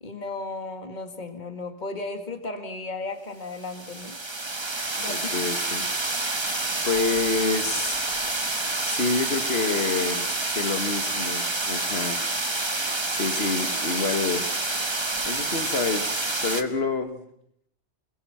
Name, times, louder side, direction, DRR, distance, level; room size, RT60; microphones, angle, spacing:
voice 1, 0.0-4.2 5.0-5.3, left 3 dB, 40° left, 6 dB, 2.1 m, -35 dB
sound 1, 3.5-16.6, right 2 dB, 25° right, 1.4 m, -28 dB
voice 2, 5.1-5.9 6.4-8.1 8.4-12.3 12.7-14.5 15.3-17.2, left 4 dB, 60° left, 8 dB, 2.2 m, -28 dB
28.0 x 21.5 x 6.0 m, 0.71 s
omnidirectional pair, 1.2 m